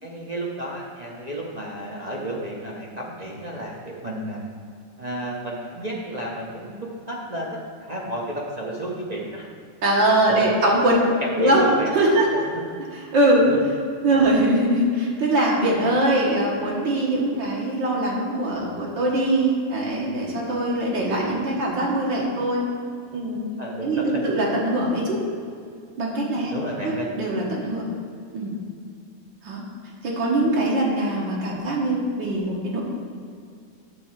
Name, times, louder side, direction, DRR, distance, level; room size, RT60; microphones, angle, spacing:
voice 1, 0.0-4.4 5.0-9.5 10.3-10.6 11.2-12.6 13.5-13.6 23.6-24.3 26.3-27.1, right 1 dB, 30° right, -3 dB, 0.7 m, -32 dB
voice 2, 9.8-11.0 11.4-12.4 12.9-13.5 14.0-22.7 23.1-23.4 23.8-25.2 26.0-26.5 26.8-27.8 28.3-28.5 29.4-29.6 30.0-32.8, right 1 dB, 65° right, -3 dB, 2.2 m, -22 dB
9.7 x 4.2 x 7.4 m, 2.3 s
omnidirectional pair, 2.2 m